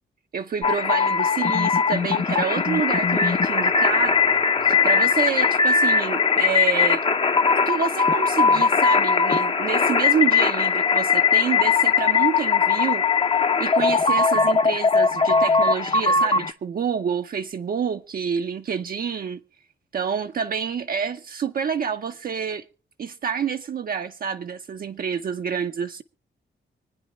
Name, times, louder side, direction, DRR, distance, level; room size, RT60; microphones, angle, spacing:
voice 1, 0.3-7.0 7.7-19.4 19.9-22.6 23.0-26.0, right 7 dB, 50° right, 0.6 m, -28 dB
sound 1, 0.6-16.5, left 5 dB, 30° left, 0.7 m, -20 dB
25.0 x 9.7 x 3.1 m
wide cardioid pair, 160°, 19 cm